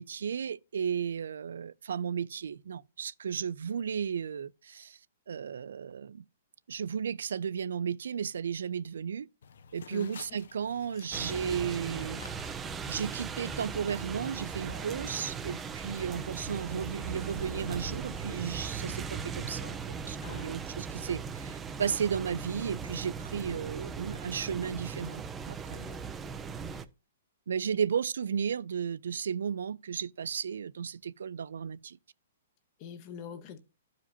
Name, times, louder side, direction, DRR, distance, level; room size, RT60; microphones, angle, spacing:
voice 1, 0.0-5.0 5.3-6.2 6.7-9.3 9.7-12.2 12.9-19.8 20.0-25.8 27.5-32.0, right 7 dB, 80° right, 0.4 m, -34 dB
sound 1, 9.4-19.8, left 6 dB, 75° left, 0.7 m, -54 dB
sound 2, 11.1-26.8, right 6 dB, 10° right, 0.4 m, -39 dB
sound 3, 13.3-18.9, right 4 dB, 65° right, 0.9 m, -45 dB
voice 2, 20.2-20.7 25.7-26.1 26.6-26.8 32.8-33.6, left 7 dB, 30° left, 0.7 m, -45 dB
12.5 x 5.0 x 2.7 m
hypercardioid pair, 170°, 0 cm